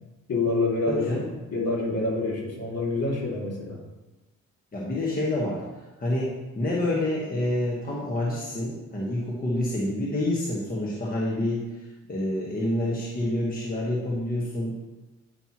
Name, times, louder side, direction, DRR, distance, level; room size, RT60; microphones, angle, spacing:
voice 1, 0.3-1.2 1.5-3.8, left 2 dB, 55° left, -3 dB, 2.4 m, -27 dB
voice 2, 0.9-1.3 4.7-5.6 6.0-11.7 12.1-14.7, left 1 dB, 30° left, -5 dB, 1.5 m, -28 dB
9.0 x 5.3 x 3.1 m, 1.1 s
cardioid pair, 90°, 30 cm